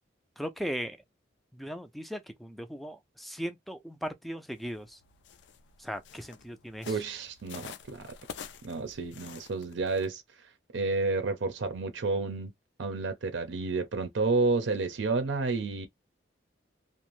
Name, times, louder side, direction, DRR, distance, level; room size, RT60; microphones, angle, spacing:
voice 1, 0.4-1.0 1.5-5.0 5.8-7.0, equal, ahead, 0.3 m, -38 dB
sound 1, 4.5-10.1, left 7 dB, 75° left, 0.4 m, -48 dB
voice 2, 6.8-8.1 8.6-10.2 10.7-12.5 12.8-15.9, right 3 dB, 90° right, 0.5 m, -30 dB
2.5 x 2.1 x 3.0 m
head